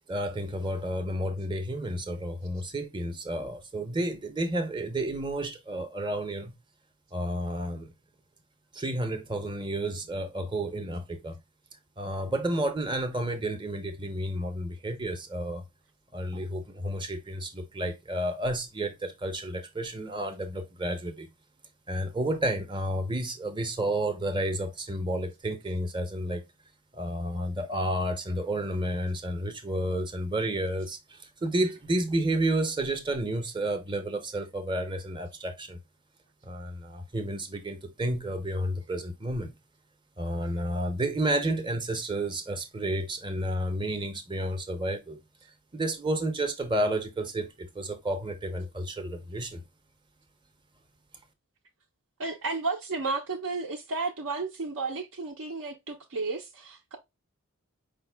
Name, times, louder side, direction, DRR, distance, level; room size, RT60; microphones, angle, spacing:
voice 1, 0.1-6.5 7.1-7.9 8.7-11.4 12.0-15.6 16.1-21.3 21.9-26.4 26.9-35.8 36.4-39.5 40.2-45.2 45.7-49.6, right 1 dB, 20° right, 0.7 m, -31 dB
voice 2, 52.2-57.0, right 3 dB, 65° right, 0.6 m, -33 dB
5.1 x 2.2 x 3.3 m
head